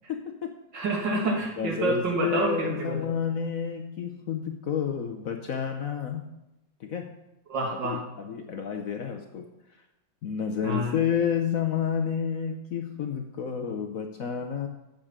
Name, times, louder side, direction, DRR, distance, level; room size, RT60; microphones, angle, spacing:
voice 1, 0.1-0.6 1.6-6.3 6.8-7.2 7.8-9.5 10.2-14.7, left 7 dB, 55° left, 4 dB, 1.0 m, -30 dB
voice 2, 0.7-3.0 7.5-8.0 10.6-10.9, right 2 dB, 70° right, -1 dB, 2.9 m, -28 dB
8.7 x 6.6 x 7.3 m, 0.92 s
omnidirectional pair, 2.1 m